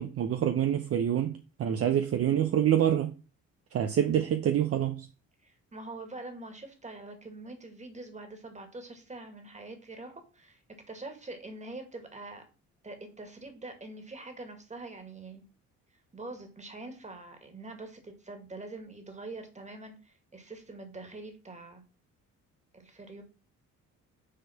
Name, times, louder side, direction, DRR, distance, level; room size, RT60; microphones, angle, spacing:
voice 1, 0.0-3.1 3.7-5.1, right 10 dB, 50° right, 0.6 m, -26 dB
voice 2, 5.4-10.6 10.9-12.4 12.8-15.4 16.1-21.8 22.7-23.2, right 2 dB, 25° right, 1.9 m, -44 dB
6.6 x 3.7 x 5.7 m
cardioid pair, 90°, 30 cm